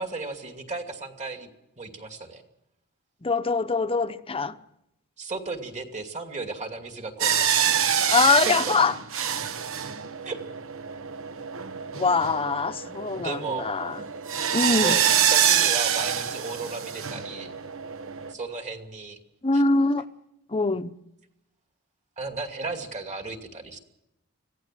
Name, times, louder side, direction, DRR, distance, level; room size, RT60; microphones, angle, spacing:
voice 1, 0.0-1.5 1.8-2.4 5.2-7.6 10.2-10.4 13.1-13.7 14.6-17.5 18.3-19.2 19.5-19.6 22.2-23.8, right 3 dB, 35° right, 2.6 m, -35 dB
voice 2, 3.2-4.6 8.1-9.0 11.9-14.1 14.5-15.0 19.4-20.1 20.5-20.9, left 3 dB, 25° left, 0.9 m, -23 dB
sound 1, 7.2-18.3, right 8 dB, 65° right, 1.2 m, -26 dB
25.0 x 17.0 x 7.6 m
head